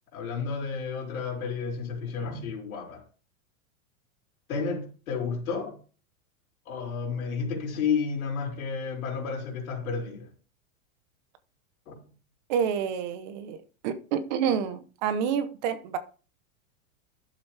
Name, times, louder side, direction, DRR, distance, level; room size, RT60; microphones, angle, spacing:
voice 1, 0.1-3.0 4.5-5.8 6.6-10.3 11.9-12.0, left 5 dB, 80° left, 4.6 m, -31 dB
voice 2, 12.5-16.0, right 7 dB, 35° right, 0.9 m, -28 dB
12.5 x 7.3 x 3.4 m
supercardioid pair, 180°, 42 cm